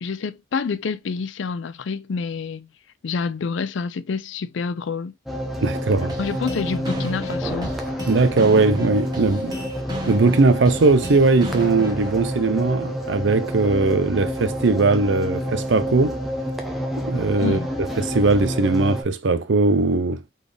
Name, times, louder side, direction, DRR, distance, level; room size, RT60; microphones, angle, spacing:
voice 1, 0.0-2.7 3.0-5.1 6.2-7.7 17.4-17.7, left 5 dB, 70° left, 0.4 m, -27 dB
sound 1, 5.3-19.0, equal, ahead, 0.8 m, -29 dB
voice 2, 5.6-6.2 8.1-9.6 10.1-16.2 17.0-17.6 18.0-20.2, right 3 dB, 70° right, 0.6 m, -19 dB
sound 2, 6.1-12.1, left 1 dB, 20° right, 1.3 m, -34 dB
4.1 x 3.5 x 3.4 m
head